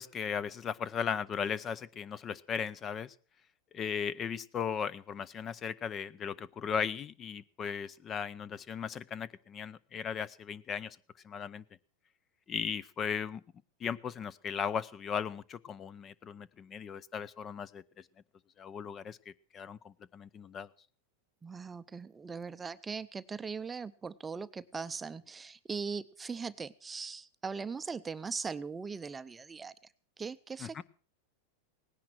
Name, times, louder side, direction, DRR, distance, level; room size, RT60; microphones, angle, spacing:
voice 1, 0.0-3.1 3.7-11.0 11.2-11.6 12.5-13.4 13.8-17.8 18.6-19.2 19.5-20.7 30.6-30.8, left 7 dB, 30° left, 21 dB, 0.7 m, -37 dB
voice 2, 21.4-29.7 30.2-30.8, right 5 dB, 15° right, 13 dB, 0.6 m, -40 dB
18.0 x 10.5 x 6.1 m, 0.41 s
supercardioid pair, 125°, 0 cm